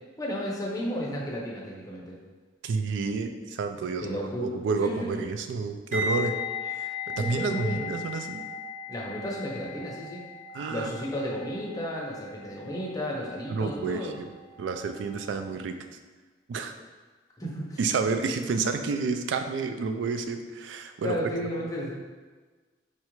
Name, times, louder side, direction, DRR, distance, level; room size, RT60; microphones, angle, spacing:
voice 1, 0.2-2.2 4.0-4.5 4.8-5.3 7.2-7.9 8.9-10.2 10.7-14.2 17.4-17.8 21.0-21.9, equal, 20° left, -3 dB, 0.6 m, -33 dB
voice 2, 2.6-6.4 6.6-8.4 10.5-10.9 13.5-14.3 14.6-15.8 16.5-16.7 17.8-21.2, right 4 dB, 85° right, 8 dB, 0.3 m, -30 dB
sound 1, 5.9-14.9 15.1-15.4, left 4 dB, 40° right, 0.9 m, -37 dB
4.2 x 2.4 x 3.0 m, 1.4 s
head